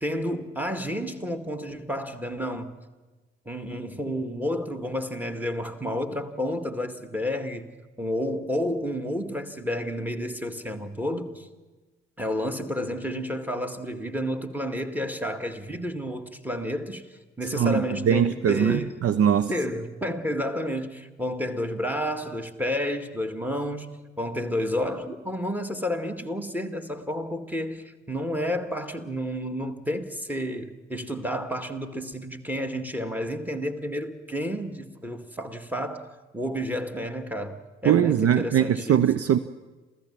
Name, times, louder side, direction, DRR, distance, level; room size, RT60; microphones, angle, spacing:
voice 1, 0.0-2.7 3.5-7.7 8.0-11.5 12.2-19.0 19.5-39.0, equal, 5° right, 2.0 m, -31 dB
voice 2, 17.5-19.5 37.8-39.4, right 9 dB, 45° right, 0.7 m, -21 dB
28.0 x 15.5 x 7.3 m
figure-of-eight pair, 45°, 34 cm